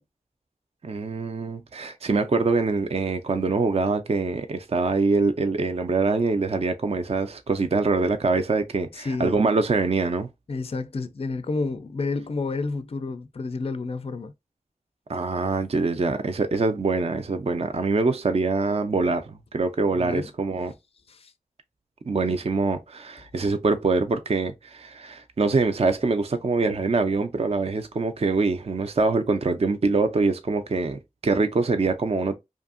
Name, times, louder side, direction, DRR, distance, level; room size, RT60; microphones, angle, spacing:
voice 1, 0.8-10.3 15.1-20.7 22.1-32.3, right 3 dB, 45° right, 0.4 m, -24 dB
voice 2, 8.9-9.4 10.5-14.3 19.9-20.3 21.1-21.3, left 3 dB, 40° left, 0.3 m, -30 dB
2.6 x 2.5 x 2.4 m
wide cardioid pair, 45°, 15 cm